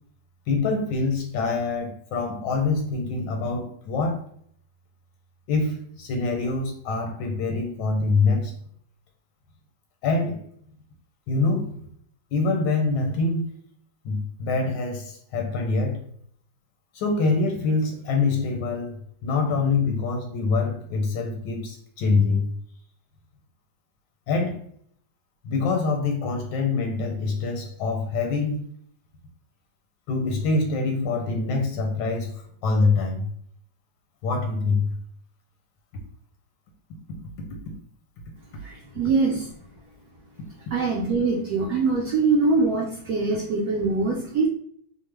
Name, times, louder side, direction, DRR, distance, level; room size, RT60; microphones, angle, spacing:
voice 1, 0.5-4.2 5.5-8.5 10.0-10.4 11.3-11.7 12.3-13.5 14.0-16.0 16.9-22.5 24.3-24.6 25.4-28.7 30.1-33.3 34.2-34.9, left 3 dB, 85° left, 2 dB, 1.3 m, -25 dB
voice 2, 38.6-39.5 40.7-44.5, right 3 dB, 70° right, -1 dB, 0.9 m, -23 dB
3.0 x 2.0 x 3.3 m, 0.62 s
omnidirectional pair, 1.9 m